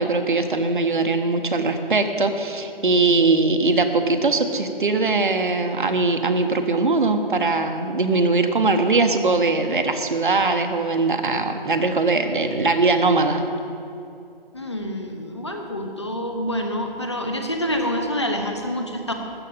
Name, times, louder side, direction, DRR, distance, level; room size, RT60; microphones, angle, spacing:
voice 1, 0.0-13.4, right 3 dB, 60° right, 6 dB, 1.1 m, -21 dB
voice 2, 14.5-19.1, equal, 30° left, 4 dB, 0.7 m, -27 dB
13.0 x 6.8 x 8.6 m, 2.7 s
hypercardioid pair, 175°, 29 cm